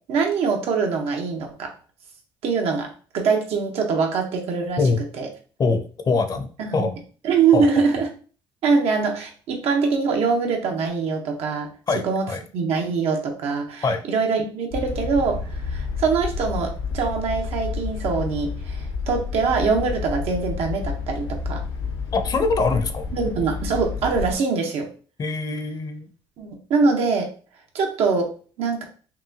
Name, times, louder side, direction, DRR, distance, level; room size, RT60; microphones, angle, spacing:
voice 1, 0.1-1.7 2.4-2.9 3.1-4.8 5.2-5.3 6.6-6.8 7.2-8.1 8.6-11.7 12.0-12.3 12.5-21.6 23.1-24.9 26.4-27.3 27.7-28.3 28.6-28.8, right 5 dB, 75° right, 2 dB, 1.0 m, -23 dB
voice 2, 5.6-7.0 7.5-7.7 11.9-12.4 13.8-14.0 22.1-23.0 25.2-26.1, left 4 dB, 35° left, 8 dB, 0.7 m, -23 dB
sound 1, 14.7-24.3, left 5 dB, 80° left, 1.1 m, -30 dB
5.8 x 2.2 x 2.8 m, 0.40 s
cardioid pair, 95°, 10 cm